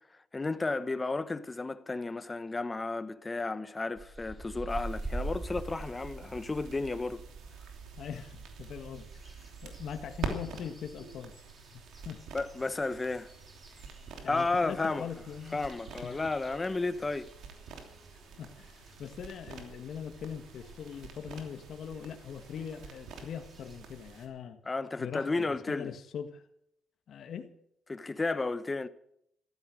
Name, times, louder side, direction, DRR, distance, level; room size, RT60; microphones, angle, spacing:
voice 1, 0.3-7.2 12.3-13.3 14.3-15.1 15.5-17.3 24.7-25.9 27.9-28.9, left 3 dB, 25° left, 1.0 m, -33 dB
sound 1, 4.0-7.0 7.3-23.8, right 2 dB, 20° right, 4.0 m, -47 dB
sound 2, 4.7-24.3, right 5 dB, 80° right, 3.0 m, -46 dB
voice 2, 8.0-11.4 11.7-12.2 14.2-15.6 16.0-16.3 18.1-24.6 25.0-26.4 27.1-27.5, left 8 dB, 65° left, 1.7 m, -42 dB
14.5 x 13.0 x 6.4 m
cardioid pair, 90°, 0 cm